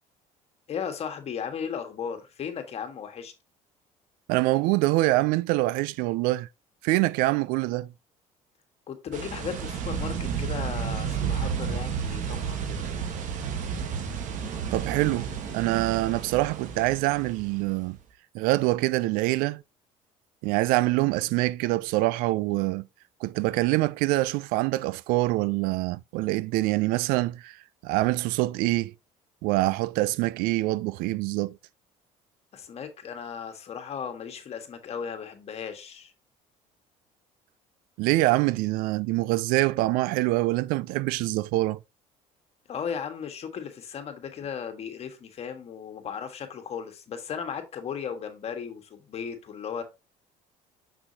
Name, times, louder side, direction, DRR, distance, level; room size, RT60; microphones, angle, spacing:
voice 1, 0.7-3.3 8.9-12.8 32.5-36.1 42.7-49.8, left 7 dB, 45° left, 1.5 m, -36 dB
voice 2, 4.3-6.5 6.8-7.9 14.7-18.0 18.3-19.6 20.4-22.9 23.2-28.9 29.4-31.6 38.0-41.8, right 19 dB, 80° right, 0.4 m, -25 dB
sound 1, 9.1-17.8, right 7 dB, 60° right, 1.4 m, -32 dB
6.2 x 6.2 x 2.8 m
supercardioid pair, 100°, 15 cm